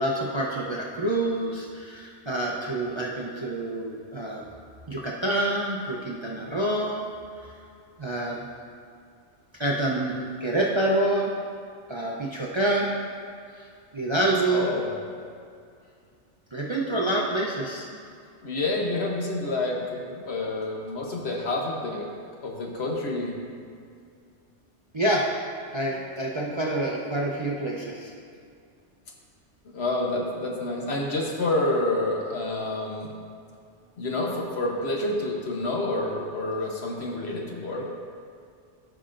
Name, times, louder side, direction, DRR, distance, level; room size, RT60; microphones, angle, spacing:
voice 1, 0.0-4.4 4.9-7.1 7.4-7.5 8.0-8.4 9.6-11.4 11.9-13.0 13.5-13.7 13.9-14.7 16.5-17.9 24.9-25.3 25.7-28.1, right 1 dB, 30° right, -4 dB, 0.6 m, -27 dB
voice 2, 14.5-14.9 17.9-18.0 18.4-22.1 22.4-23.4 26.5-26.7 29.7-33.1 34.0-37.9, left 2 dB, 60° left, -1 dB, 1.3 m, -28 dB
14.0 x 5.6 x 2.6 m, 2.3 s
omnidirectional pair, 1.2 m